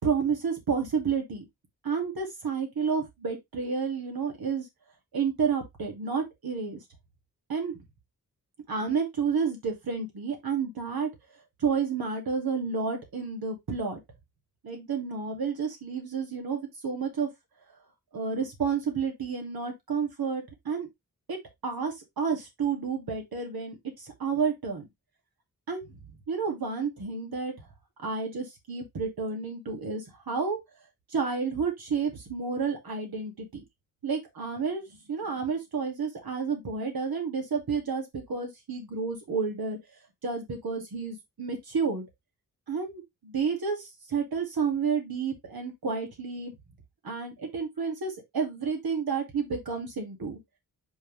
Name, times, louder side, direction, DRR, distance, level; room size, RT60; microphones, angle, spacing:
voice 1, 0.0-1.4 1.8-4.6 5.1-6.8 7.5-7.8 8.7-11.1 11.6-14.0 14.6-17.3 18.1-20.9 21.3-21.4 21.6-24.9 25.7-25.9 26.3-27.7 28.0-30.6 31.1-33.6 34.0-39.8 40.2-42.0 42.7-46.5 47.0-50.4, right 5 dB, 90° right, 2.5 m, -30 dB
5.6 x 5.3 x 3.3 m
wide cardioid pair, 110°, 35 cm